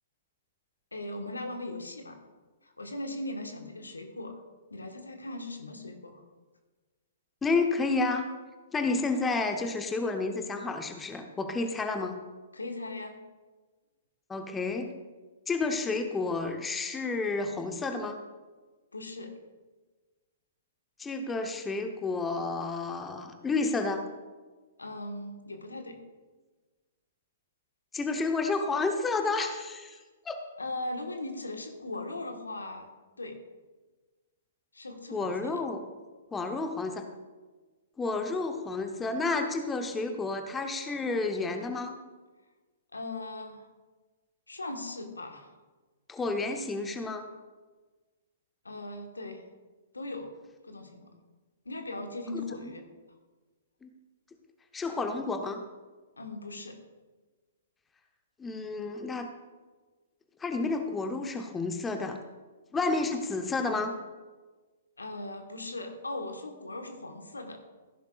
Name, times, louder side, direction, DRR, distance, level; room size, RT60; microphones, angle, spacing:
voice 1, 0.9-2.2 2.6-4.4 4.7-6.2 12.5-13.2 18.9-19.3 24.8-26.0 30.6-32.9 33.2-33.4 34.7-35.6 42.9-43.6 44.5-45.5 48.6-49.5 49.9-50.3 50.6-51.2 51.6-52.8 56.2-56.8 65.0-67.6, left 2 dB, 80° left, 5 dB, 1.5 m, -39 dB
voice 2, 7.4-8.3 8.7-12.2 14.3-14.9 15.5-18.2 21.0-24.1 27.9-30.0 30.2-30.4 35.1-35.8 36.3-37.0 38.0-42.0 46.1-47.2 52.3-52.7 53.8-53.9 54.7-55.6 58.4-59.3 60.4-62.2 62.7-63.9, left 3 dB, 10° left, 5 dB, 0.9 m, -30 dB
15.5 x 10.5 x 2.5 m, 1.3 s
figure-of-eight pair, 115°, 0 cm